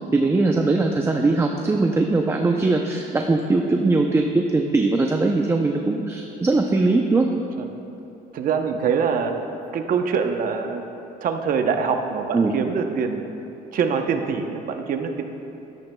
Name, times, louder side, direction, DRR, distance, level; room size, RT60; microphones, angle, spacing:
voice 1, 0.1-7.3 12.3-12.5, right 3 dB, 15° right, 2 dB, 0.6 m, -20 dB
voice 2, 8.3-9.4 9.7-10.8 11.2-13.2 13.7-15.2, right 6 dB, 55° right, 5 dB, 0.8 m, -24 dB
13.0 x 12.0 x 2.3 m, 2.8 s
cardioid pair, 110°, 17 cm